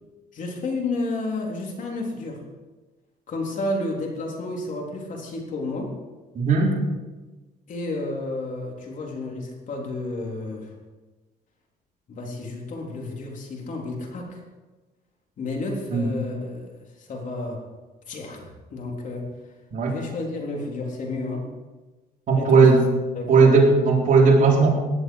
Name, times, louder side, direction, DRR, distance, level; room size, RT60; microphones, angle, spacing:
voice 1, 0.3-2.4 3.3-5.9 7.7-10.7 12.1-14.4 15.4-17.6 18.1-19.5 19.9-21.5 22.4-22.7 23.1-23.5, left 2 dB, 50° left, 0 dB, 3.6 m, -31 dB
voice 2, 6.3-6.7 15.9-16.1 19.7-19.9 22.3-22.8 23.3-24.7, right 4 dB, 50° right, -2 dB, 4.3 m, -17 dB
17.5 x 11.0 x 4.8 m, 1.2 s
cardioid pair, 110°, 17 cm